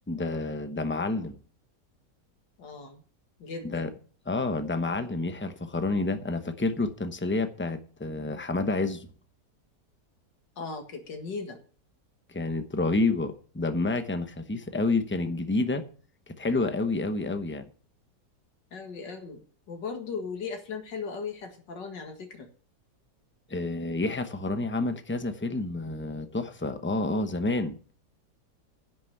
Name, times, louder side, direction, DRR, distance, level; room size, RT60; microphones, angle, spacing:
voice 1, 0.1-1.4 3.6-3.9 4.3-9.1 12.3-15.9 16.3-17.7 23.5-27.8, left 2 dB, 10° left, 0.5 m, -29 dB
voice 2, 2.6-3.0 3.4-3.9 10.6-11.6 18.7-22.5, left 5 dB, 85° left, 2.4 m, -37 dB
10.5 x 6.1 x 8.3 m
omnidirectional pair, 1.9 m